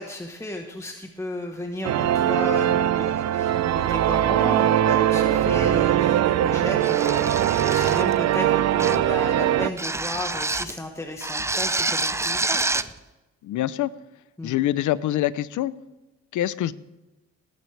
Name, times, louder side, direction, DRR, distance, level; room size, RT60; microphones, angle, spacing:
voice 1, 0.0-12.8 14.4-14.6, left 1 dB, 10° left, 3 dB, 1.3 m, -34 dB
sound 1, 1.8-9.7, right 11 dB, 60° right, 0.6 m, -21 dB
sound 2, 6.8-8.2 8.8-9.1 9.8-10.8 11.2-12.9, right 2 dB, 10° right, 0.5 m, -27 dB
voice 2, 13.4-13.9 14.4-15.7 16.3-16.7, left 13 dB, 75° left, 17 dB, 0.7 m, -25 dB
19.0 x 9.3 x 3.4 m, 1.0 s
cardioid pair, 90°, 30 cm